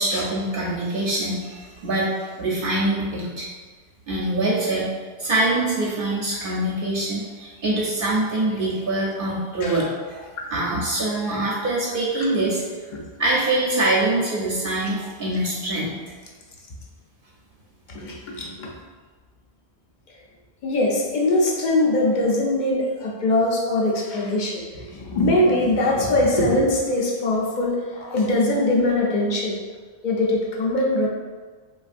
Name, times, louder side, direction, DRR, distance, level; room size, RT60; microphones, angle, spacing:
voice 1, 0.0-3.5 4.1-4.9 5.2-12.6 13.2-15.9, right 1 dB, 60° right, -6 dB, 0.7 m, -24 dB
voice 2, 17.9-18.7 20.6-29.6 30.0-31.1, left 1 dB, 55° left, -2 dB, 0.6 m, -22 dB
3.3 x 2.3 x 2.5 m, 1.5 s
omnidirectional pair, 1.1 m